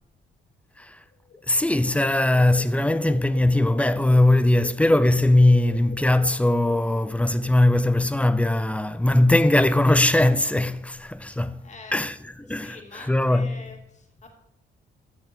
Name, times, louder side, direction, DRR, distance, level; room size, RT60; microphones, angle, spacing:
sound 1, 1.1-7.8, left 6 dB, 60° left, 1.4 m, -45 dB
voice 1, 1.5-11.6 11.9-12.8 13.1-13.6, left 1 dB, 5° left, 0.5 m, -20 dB
voice 2, 11.6-12.0 12.5-14.3, left 3 dB, 35° left, 2.3 m, -45 dB
14.0 x 6.1 x 4.4 m
cardioid pair, 90°, 20 cm